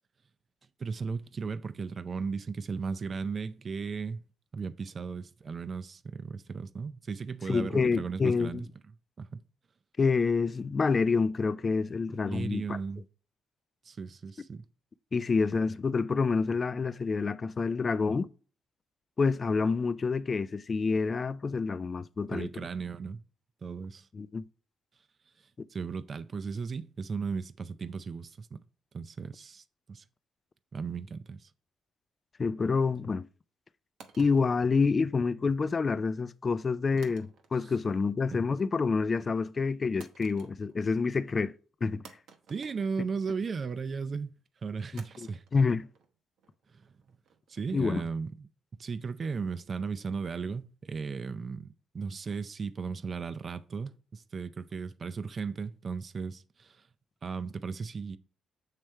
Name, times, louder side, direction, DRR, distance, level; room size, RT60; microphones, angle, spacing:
voice 1, 0.8-4.2 4.5-8.7 9.2-9.4 12.1-13.0 13.9-14.6 22.3-23.2 23.6-24.1 25.7-28.6 28.9-29.6 29.9-30.0 30.7-31.5 38.3-38.4 42.5-44.4 44.6-45.4 46.7-46.8 47.5-56.8 57.2-58.2, right 5 dB, 40° right, 0.5 m, -36 dB
voice 2, 7.5-8.6 10.0-12.8 15.1-18.3 19.2-22.5 24.1-24.4 25.6-25.7 32.4-33.3 34.2-41.5 41.8-42.0 45.2-45.9 47.7-48.0, left 4 dB, 35° left, 0.3 m, -28 dB
sound 1, 34.0-35.4 37.0-37.8 38.1-38.6 40.0-40.9 41.2-41.3 42.0-43.6 45.0-48.0, right 5 dB, 80° right, 0.9 m, -56 dB
7.5 x 3.3 x 4.5 m
cardioid pair, 90°, 0 cm